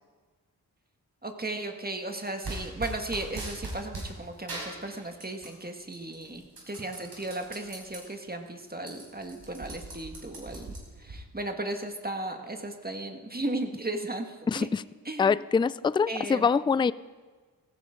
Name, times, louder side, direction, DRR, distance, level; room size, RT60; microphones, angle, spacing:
voice 1, 1.2-10.7 11.0-14.7 15.1-15.3 16.1-16.5, right 2 dB, 25° right, 4 dB, 1.8 m, -35 dB
sound 1, 2.4-4.1 4.5-5.6 5.9-8.0 8.4-8.5 8.7-11.2, right 2 dB, 70° right, 4.9 m, -39 dB
voice 2, 14.5-14.8 15.2-16.9, left 5 dB, 15° left, 18 dB, 0.3 m, -24 dB
17.5 x 15.0 x 3.8 m, 1.4 s
cardioid pair, 50°, 38 cm